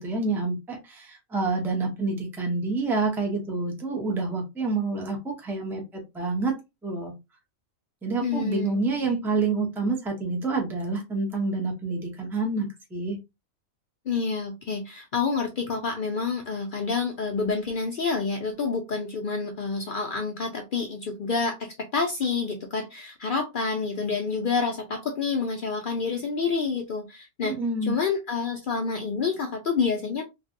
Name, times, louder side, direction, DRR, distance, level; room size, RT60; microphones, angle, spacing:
voice 1, 0.0-6.5 6.8-7.1 8.0-13.2 27.4-27.9, right 3 dB, ahead, 0.5 m, -28 dB
voice 2, 8.2-9.2 14.1-27.6 27.9-30.2, left 4 dB, 60° left, 0.5 m, -28 dB
3.2 x 2.2 x 2.5 m
omnidirectional pair, 1.4 m